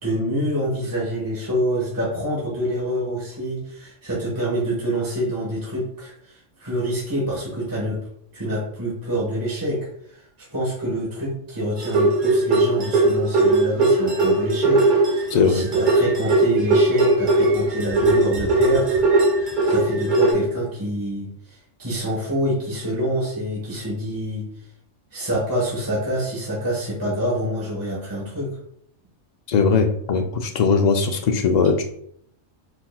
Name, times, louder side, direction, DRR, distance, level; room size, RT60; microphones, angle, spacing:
voice 1, 0.0-8.0 8.3-19.0 19.3-24.5 25.1-28.5, equal, 15° right, -7 dB, 1.3 m, -26 dB
sound 1, 11.8-20.3, right 2 dB, 45° right, 1.0 m, -19 dB
voice 2, 15.3-15.6 29.5-31.8, left 5 dB, 90° left, 3 dB, 0.3 m, -19 dB
4.4 x 4.1 x 2.3 m, 0.68 s
omnidirectional pair, 1.3 m